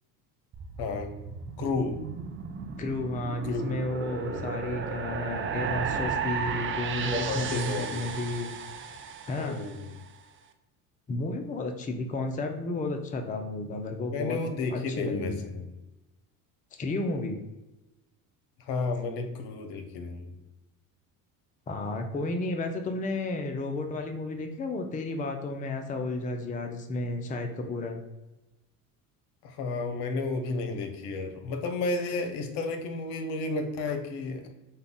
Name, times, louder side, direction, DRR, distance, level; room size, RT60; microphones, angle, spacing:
sound 1, 0.5-9.9, right 6 dB, 30° right, 0.5 m, -34 dB
voice 1, 0.8-1.1 1.6-2.0 3.5-3.7 4.3-4.5 7.0-8.1 9.4-9.9 14.1-15.6 18.6-20.3 29.4-34.5, left 3 dB, 65° left, 6 dB, 0.9 m, -32 dB
voice 2, 2.8-8.5 9.3-9.6 11.1-14.4 14.7-15.4 16.8-17.4 21.7-28.0, left 2 dB, 20° left, 5 dB, 0.5 m, -32 dB
5.4 x 2.3 x 3.8 m, 1.0 s
supercardioid pair, 80°, 43 cm